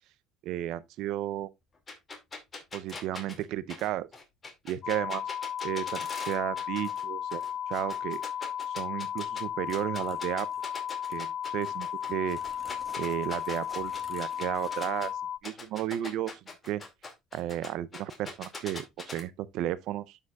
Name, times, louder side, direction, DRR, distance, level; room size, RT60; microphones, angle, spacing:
voice 1, 0.4-1.5 2.7-4.1 4.6-5.4 5.6-7.4 7.7-8.2 8.8-10.5 11.1-12.4 13.0-15.1 15.4-16.3 16.6-16.8 17.3-20.2, right 13 dB, 70° right, 0.5 m, -33 dB
sound 1, 1.9-7.0 7.3-9.4 9.7-15.1 15.4-19.2, left 3 dB, 30° left, 2.2 m, -42 dB
sound 2, 4.8-15.4, left 9 dB, 50° left, 0.3 m, -35 dB
sound 3, 9.7-10.8 11.1-11.2 11.6-15.1, equal, ahead, 1.6 m, -54 dB
11.5 x 4.9 x 2.3 m
supercardioid pair, 90°, 0 cm